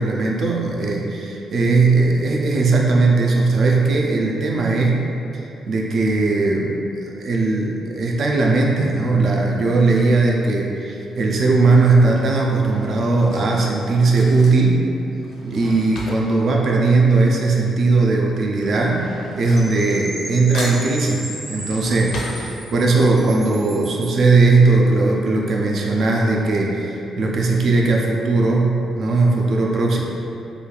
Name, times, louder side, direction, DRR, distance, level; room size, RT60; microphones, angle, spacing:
voice 1, 0.0-5.1 5.7-6.8 7.2-14.9 15.4-22.1 22.7-30.0, right 3 dB, 50° right, -1 dB, 0.3 m, -18 dB
Drawer open or close / Cutlery silverware, 10.5-10.9 11.8-17.7 17.9-20.3 20.5-23.1 23.5-23.6 23.8-23.9, left 2 dB, 65° left, 0.4 m, -38 dB
Percussion / Wind chime, 19.6-24.3, right 1 dB, 15° right, 0.6 m, -35 dB
3.0 x 2.4 x 2.2 m, 2.7 s
cardioid pair, 120°, 0 cm